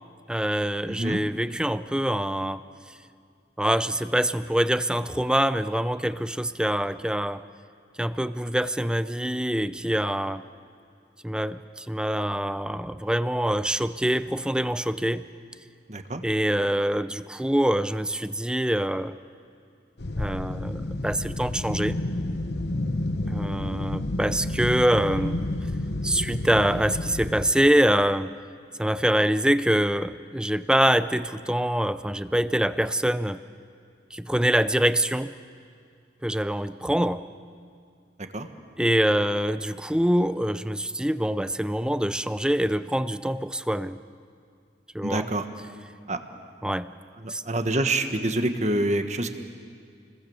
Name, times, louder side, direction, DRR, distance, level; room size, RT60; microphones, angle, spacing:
voice 1, 0.3-2.6 3.6-7.4 8.0-10.4 11.2-15.3 16.2-19.2 20.2-22.0 23.3-25.4 26.0-28.3 28.8-33.4 34.1-35.3 36.2-37.3 38.8-44.0 44.9-45.3 46.6-47.0 47.3-47.4, right 1 dB, 5° right, 13 dB, 0.5 m, -25 dB
voice 2, 0.9-1.2 15.9-16.2 38.3-38.5 45.0-45.4 46.1-46.2 47.2-49.3, right 1 dB, 40° right, 7 dB, 1.5 m, -26 dB
sound 1, 20.0-27.5, left 1 dB, 70° left, 1.0 m, -30 dB
29.5 x 22.0 x 7.2 m, 2.2 s
head